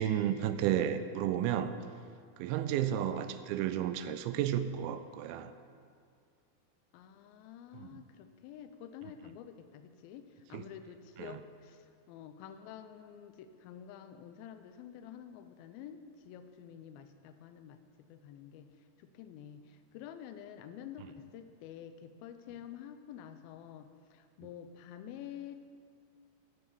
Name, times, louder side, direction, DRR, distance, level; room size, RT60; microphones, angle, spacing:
voice 1, 0.0-1.7 2.4-5.5 7.7-8.0 10.5-10.6 11.2-11.4, right 10 dB, 85° right, 11 dB, 2.4 m, -32 dB
voice 2, 3.0-3.4 6.9-17.8 18.1-18.7 19.0-25.6, left 9 dB, 80° left, 9 dB, 2.4 m, -49 dB
13.5 x 4.7 x 6.9 m, 2.2 s
omnidirectional pair, 4.4 m